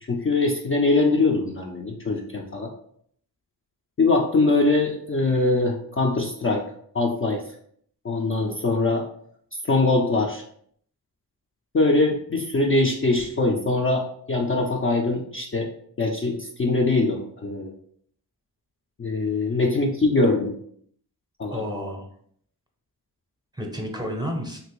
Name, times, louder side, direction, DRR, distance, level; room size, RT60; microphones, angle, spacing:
voice 1, 0.0-2.7 4.0-6.6 6.9-7.4 8.0-9.0 9.6-10.4 11.7-15.7 16.0-17.7 19.0-20.5 21.4-21.6, left 2 dB, 30° left, 0 dB, 0.4 m, -22 dB
voice 2, 19.3-19.8 21.5-22.1 23.5-24.6, equal, 10° right, 1 dB, 0.8 m, -32 dB
2.9 x 2.5 x 3.0 m, 0.64 s
cardioid pair, 50°, 41 cm